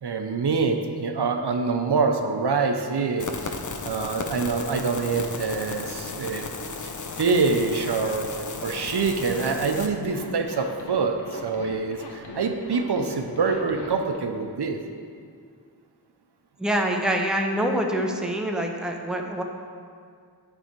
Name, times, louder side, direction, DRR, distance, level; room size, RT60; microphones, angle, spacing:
voice 1, 0.0-3.5 3.8-6.5 7.2-8.3 8.6-14.8, right 4 dB, 80° right, 4 dB, 0.6 m, -25 dB
sound 1, 3.2-9.9, left 4 dB, 50° left, 0.6 m, -35 dB
Zipper (clothing), 10.0-14.2, left 3 dB, 90° left, 0.8 m, -42 dB
voice 2, 16.6-19.4, right 1 dB, ahead, 2 dB, 0.6 m, -25 dB
9.9 x 3.5 x 4.4 m, 2.2 s
wide cardioid pair, 45°, 39 cm